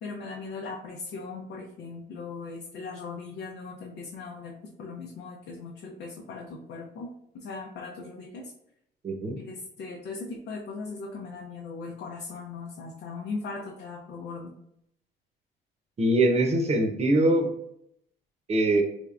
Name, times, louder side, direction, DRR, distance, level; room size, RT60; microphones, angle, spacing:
voice 1, 0.0-8.5 9.4-14.5, left 4 dB, 70° left, -2 dB, 0.7 m, -39 dB
voice 2, 9.0-9.4 16.0-17.5 18.5-18.8, right 1 dB, 35° right, 4 dB, 0.8 m, -22 dB
3.5 x 3.4 x 2.5 m, 0.74 s
cardioid pair, 90°, 19 cm